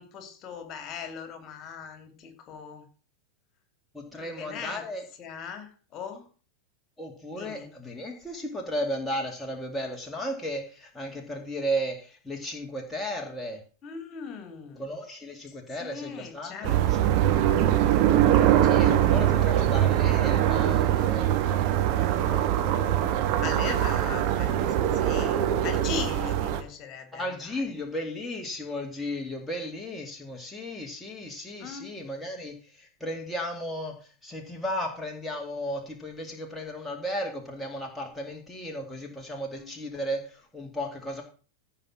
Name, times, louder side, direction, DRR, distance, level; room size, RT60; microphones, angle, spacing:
voice 1, 0.0-2.9 4.1-4.9 5.2-6.3 7.3-7.7 13.8-14.9 15.5-16.9 18.6-19.1 19.3-19.7 21.8-22.4 23.4-27.7 31.6-31.9 39.5-39.7, left 6 dB, 35° left, 7 dB, 2.9 m, -40 dB
voice 2, 3.9-5.0 7.0-13.6 14.8-16.9 18.4-21.3 27.1-41.2, equal, 5° left, 0 dB, 2.3 m, -34 dB
sound 1, 16.6-26.6, right 11 dB, 45° right, 1.4 m, -23 dB
16.0 x 5.8 x 6.0 m, 0.37 s
figure-of-eight pair, 90°, 0 cm